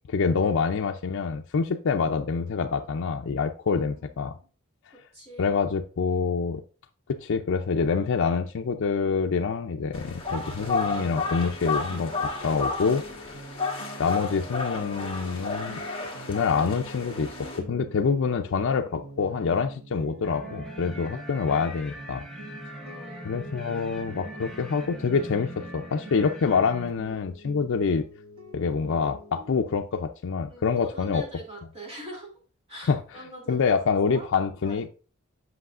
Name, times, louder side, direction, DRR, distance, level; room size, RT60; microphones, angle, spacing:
voice 1, 0.1-4.3 5.4-6.6 7.1-13.4 14.0-15.8 16.2-22.2 23.2-28.0 28.5-31.2 32.8-34.9, left 5 dB, 65° left, 0.4 m, -26 dB
voice 2, 3.7-4.5 5.1-5.5 22.8-23.3 30.5-32.4 32.7-33.8 34.1-34.3 34.6-34.8, right 1 dB, 30° right, 2.6 m, -44 dB
sound 1, 9.9-17.6, left 3 dB, 25° left, 1.3 m, -32 dB
sound 2, 10.4-29.8, right 1 dB, 75° right, 1.0 m, -46 dB
sound 3, 20.2-26.9, equal, 5° left, 0.9 m, -41 dB
7.9 x 5.5 x 2.4 m
head